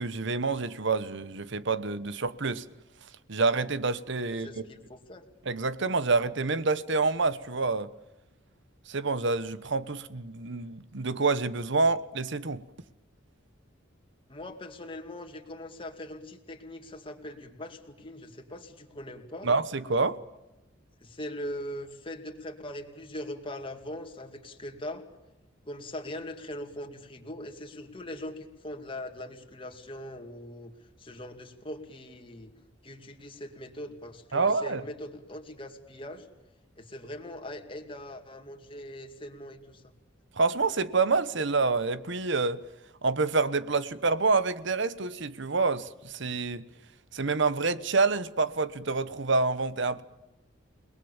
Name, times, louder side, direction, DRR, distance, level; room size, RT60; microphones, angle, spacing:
voice 1, 0.0-2.6 3.3-4.5 5.4-7.9 8.9-12.6 19.4-20.2 34.3-34.8 40.4-42.6 43.0-46.6 47.1-50.0, right 3 dB, 65° right, 1.2 m, -27 dB
voice 2, 4.3-5.2 14.3-19.5 21.0-25.0 25.6-30.7 31.0-32.5 32.8-36.3 36.8-39.8, left 1 dB, 25° left, 2.5 m, -41 dB
29.5 x 19.5 x 7.3 m
head